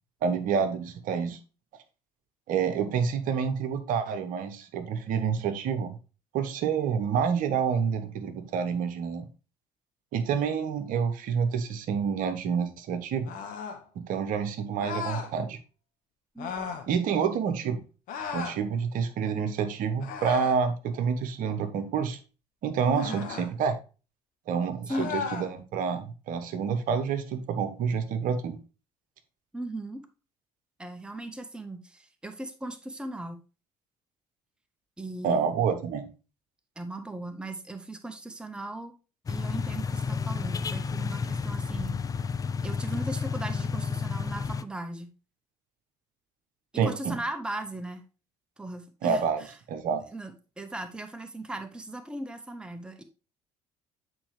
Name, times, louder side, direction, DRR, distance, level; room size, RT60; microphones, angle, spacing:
voice 1, 0.2-1.4 2.5-6.0 6.3-9.3 10.1-13.3 14.0-15.6 16.9-17.8 18.3-22.2 22.6-23.8 24.5-28.6 35.2-36.1 46.8-47.2 49.0-50.0, right 6 dB, 55° right, 9 dB, 1.0 m, -28 dB
sound 1, 13.2-13.8 14.8-15.3 16.4-16.9 18.1-18.6 20.0-20.6 22.9-23.5 24.9-25.5, left 6 dB, 60° left, 1.3 m, -35 dB
voice 2, 22.9-23.2 24.9-25.1 29.5-30.0 30.8-33.4 35.0-35.5 36.8-38.9 39.3-42.0 42.6-45.1 46.8-48.0 48.6-49.5 50.1-53.0, right 1 dB, 5° right, 8 dB, 0.8 m, -38 dB
sound 2, 39.3-44.6, left 5 dB, 20° left, 0.4 m, -31 dB
8.8 x 4.6 x 3.1 m, 0.33 s
figure-of-eight pair, 55°, 17 cm